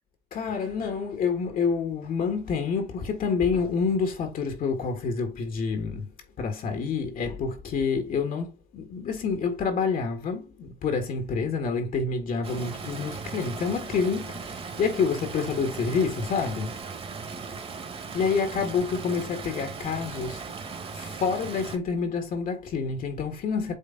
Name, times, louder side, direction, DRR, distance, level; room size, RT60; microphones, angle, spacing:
voice 1, 0.3-6.1 6.4-16.8 18.1-20.4 20.9-23.7, left 5 dB, 55° left, 1.7 m, -28 dB
Stream, 12.4-21.8, right 5 dB, 35° right, 1.6 m, -38 dB
8.2 x 3.3 x 4.0 m
cardioid pair, 110°, 17 cm